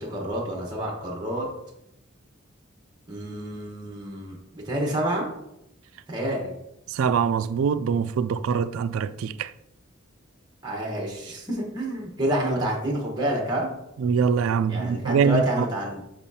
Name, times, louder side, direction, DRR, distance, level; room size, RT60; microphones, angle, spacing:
voice 1, 0.0-1.4 3.1-5.3 6.1-6.5 10.6-13.7 14.7-16.0, right 1 dB, 20° right, 1.1 m, -28 dB
voice 2, 6.9-9.5 14.0-15.7, right 6 dB, 85° right, 0.3 m, -23 dB
7.0 x 5.5 x 2.8 m
head